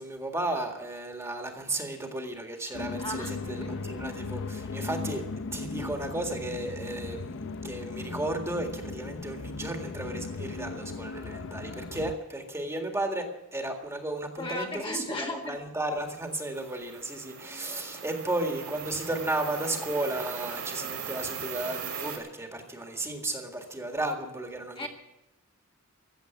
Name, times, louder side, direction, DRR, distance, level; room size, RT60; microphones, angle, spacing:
voice 1, 0.0-5.2 5.5-24.9, right 1 dB, 15° right, 3 dB, 1.9 m, -34 dB
sound 1, 2.7-12.1, left 3 dB, 60° left, 0.6 m, -37 dB
voice 2, 3.0-3.3 3.6-3.7 14.4-15.6 24.7-24.9, left 1 dB, 25° left, 1 dB, 1.5 m, -35 dB
sound 2, 16.3-22.2, right 6 dB, 75° right, 3.0 m, -39 dB
15.0 x 8.2 x 9.4 m, 0.93 s
head